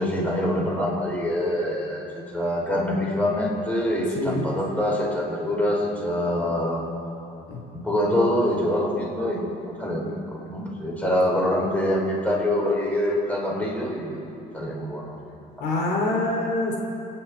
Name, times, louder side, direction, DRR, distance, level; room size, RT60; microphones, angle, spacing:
voice 1, 0.0-2.1 2.3-6.8 7.8-10.2 10.5-14.3 14.5-15.2, left 1 dB, 10° left, -3 dB, 4.6 m, -25 dB
voice 2, 15.6-16.8, left 2 dB, 80° left, -1 dB, 3.0 m, -25 dB
28.5 x 9.9 x 4.5 m, 2.8 s
cardioid pair, 110°, 17 cm